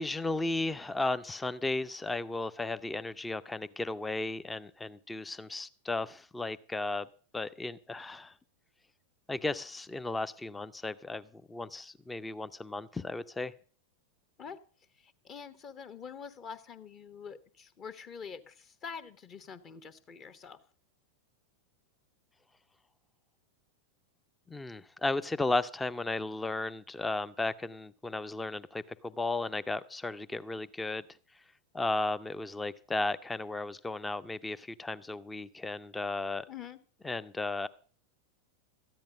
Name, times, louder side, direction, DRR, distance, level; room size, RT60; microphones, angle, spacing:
voice 1, 0.0-7.1 7.3-8.3 9.3-13.5 24.5-31.0 31.7-36.5 37.0-37.7, left 2 dB, 10° left, 15 dB, 0.6 m, -35 dB
voice 2, 15.0-20.6 36.5-36.8, left 6 dB, 30° left, 13 dB, 1.0 m, -45 dB
13.5 x 10.5 x 5.0 m, 0.42 s
figure-of-eight pair, 90°, 0 cm